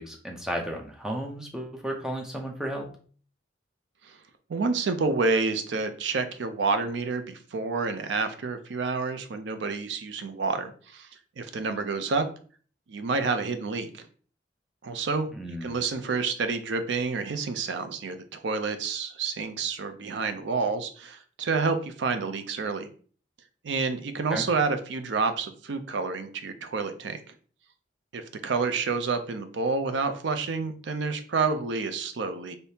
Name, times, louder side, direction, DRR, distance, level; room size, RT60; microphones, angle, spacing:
voice 1, 0.0-2.9 15.3-15.8 24.3-24.5, equal, 5° right, 1 dB, 0.5 m, -33 dB
voice 2, 4.5-11.1 11.4-12.3 12.9-14.0 14.8-15.3 15.6-22.9 23.6-27.2 28.1-32.6, right 4 dB, 70° right, 9 dB, 0.4 m, -29 dB
3.4 x 2.7 x 2.7 m, 0.43 s
head